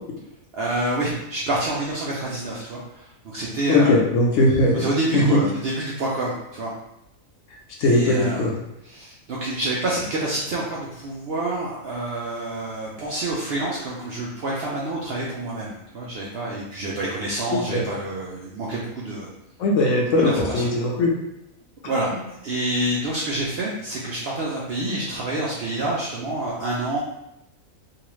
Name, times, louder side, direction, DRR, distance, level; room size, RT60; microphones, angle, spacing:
voice 1, 0.5-4.0 4.7-6.7 7.8-8.4 8.8-19.3 20.2-20.7 21.9-27.0, right 1 dB, 70° right, -5 dB, 0.6 m, -28 dB
voice 2, 3.7-4.8 5.1-5.4 7.8-8.5 17.5-17.8 19.6-21.1, left 2 dB, 70° left, -1 dB, 0.9 m, -19 dB
2.7 x 2.4 x 3.0 m, 0.86 s
omnidirectional pair, 1.5 m